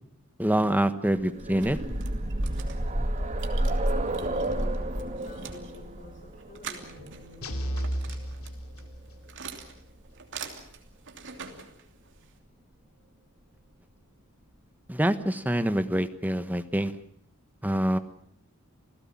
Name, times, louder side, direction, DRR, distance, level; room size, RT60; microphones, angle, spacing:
voice 1, 0.4-1.8 14.9-16.9 17.6-18.0, right 1 dB, 10° right, 10 dB, 1.2 m, -25 dB
sound 1, 1.2-9.0 10.1-10.2 10.6-10.7, right 1 dB, 35° right, 2.0 m, -31 dB
sound 2, 1.3-12.4, right 6 dB, 60° right, 2.9 m, -46 dB
voice 2, 3.1-7.8, left 1 dB, 40° left, 4 dB, 6.9 m, -48 dB
sound 3, 7.4-9.3, equal, 80° left, 3.1 m, -33 dB
28.0 x 16.5 x 7.4 m, 0.65 s
head